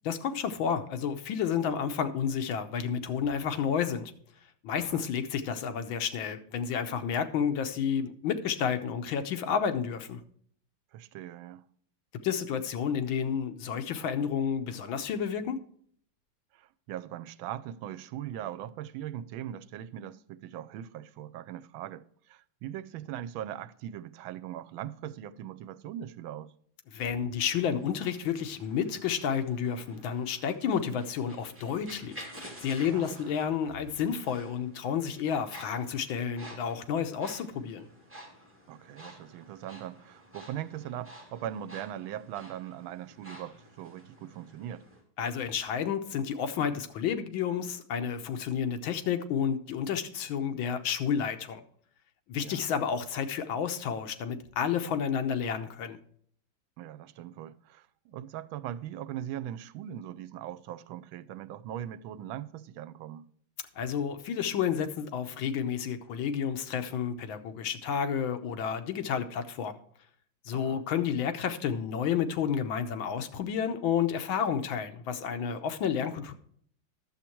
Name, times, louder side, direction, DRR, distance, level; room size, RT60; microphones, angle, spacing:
voice 1, 0.0-4.1 4.6-10.2 12.2-15.6 26.9-37.9 45.2-51.6 52.3-56.0 63.8-69.8 70.4-76.3, left 7 dB, 85° left, 1.6 m, -31 dB
voice 2, 10.9-11.7 16.5-26.5 32.9-33.4 38.7-44.9 52.4-52.7 56.8-63.3 70.5-70.8, right 11 dB, 85° right, 1.4 m, -40 dB
sound 1, 27.3-45.0, equal, 5° right, 2.4 m, -51 dB
11.5 x 7.3 x 4.4 m
omnidirectional pair, 2.1 m